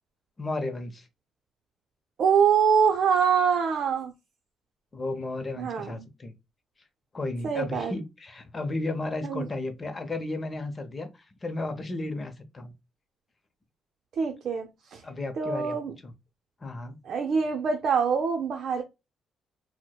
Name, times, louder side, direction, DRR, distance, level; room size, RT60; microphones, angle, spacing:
voice 1, 0.4-1.1 4.9-6.3 7.1-12.7 15.0-15.8 16.0-16.1 16.6-17.0, left 2 dB, 30° left, 0.7 m, -34 dB
voice 2, 2.2-4.1 5.6-6.1 7.4-7.9 9.2-9.4 14.2-15.0 15.4-15.9 17.1-18.8, right 6 dB, 60° right, 0.6 m, -24 dB
4.3 x 2.1 x 2.3 m
cardioid pair, 90°, 0 cm